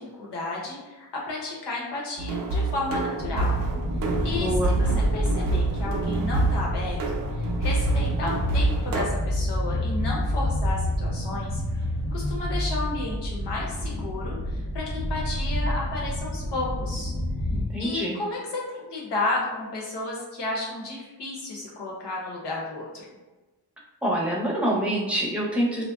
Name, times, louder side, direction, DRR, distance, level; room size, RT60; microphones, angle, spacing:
voice 1, 0.0-3.5 4.2-4.9 5.1-7.0 7.4-11.8 12.1-17.1 17.8-23.1, left 2 dB, 75° left, -3 dB, 0.9 m, -32 dB
sound 1, 2.2-9.1, right 3 dB, 50° right, 0.5 m, -28 dB
sound 2, 3.2-17.6, equal, 30° left, 0.6 m, -28 dB
voice 2, 4.4-4.7 17.5-18.2 24.0-25.8, right 1 dB, 5° right, -5 dB, 0.7 m, -26 dB
2.6 x 2.1 x 2.3 m, 1.2 s
cardioid pair, 70°, 42 cm